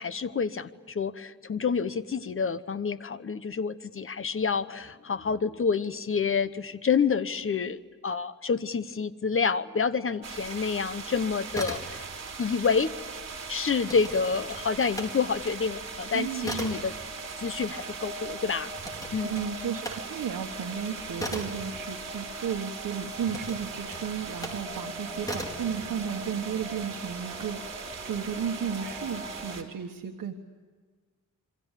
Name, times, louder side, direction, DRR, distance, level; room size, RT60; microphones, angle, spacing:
voice 1, 0.0-12.1 12.4-12.9 13.5-16.9 17.4-18.7 19.1-19.5, left 5 dB, 40° left, 13 dB, 1.0 m, -28 dB
sound 1, 10.1-29.6, equal, 15° right, 3.2 m, -44 dB
sound 2, 10.2-29.6, right 5 dB, 50° right, 3.7 m, -40 dB
sound 3, 11.5-12.4 12.6-15.1 15.5-22.6 23.2-24.7 25.2-25.7, equal, 10° left, 4.6 m, -39 dB
voice 2, 16.1-16.7 19.2-30.3, right 7 dB, 85° right, 3 dB, 1.5 m, -34 dB
27.5 x 24.5 x 8.3 m, 1.5 s
wide cardioid pair, 130°, 32 cm